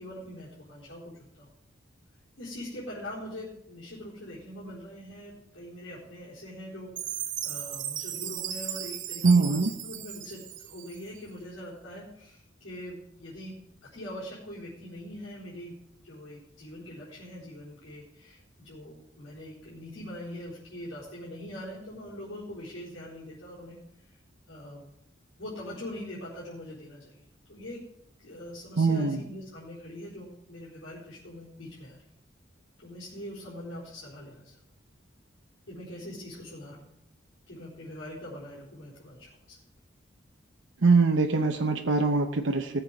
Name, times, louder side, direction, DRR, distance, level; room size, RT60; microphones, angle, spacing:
voice 1, 0.0-1.5 2.4-15.7 16.0-24.2 24.5-24.8 25.4-27.8 28.2-32.0 32.8-34.6 35.7-36.9 37.5-39.6, left 1 dB, 75° left, -7 dB, 4.2 m, -43 dB
Chime, 7.0-11.2, right 10 dB, 40° right, 0.9 m, -36 dB
voice 2, 9.2-9.7 28.8-29.2 40.8-42.8, right 4 dB, 70° right, 3 dB, 0.8 m, -23 dB
18.0 x 7.5 x 5.2 m, 0.77 s
head